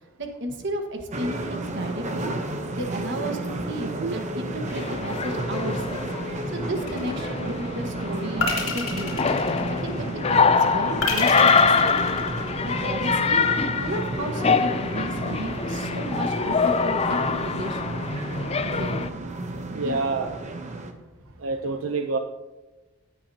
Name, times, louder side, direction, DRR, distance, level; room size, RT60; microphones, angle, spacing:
voice 1, 0.2-2.3 2.7-9.3 9.8-12.3 12.6-13.4 13.8-17.9 18.8-19.1 19.7-20.0, right 1 dB, 60° right, 4 dB, 1.5 m, -33 dB
sound 1, 1.1-20.9, right 2 dB, 35° right, 0.9 m, -32 dB
sound 2, 4.7-19.1, left 5 dB, 30° left, 0.5 m, -25 dB
sound 3, 6.9-7.5 8.4-10.1 11.0-12.8, left 4 dB, 65° left, 2.7 m, -29 dB
voice 2, 19.8-20.4 21.4-22.2, right 3 dB, 85° right, 6 dB, 0.6 m, -27 dB
16.0 x 8.9 x 2.8 m, 1.1 s
head